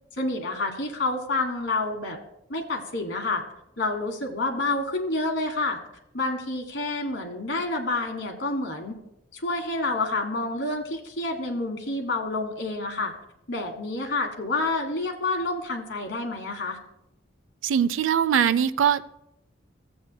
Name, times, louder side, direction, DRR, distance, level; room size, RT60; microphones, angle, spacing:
voice 1, 0.2-2.2 2.5-3.4 3.8-5.8 6.1-8.9 9.3-13.1 13.5-16.8, left 2 dB, 65° left, 3 dB, 1.4 m, -28 dB
voice 2, 17.6-19.1, right 8 dB, 80° right, 15 dB, 0.4 m, -22 dB
15.0 x 8.0 x 2.2 m, 0.82 s
head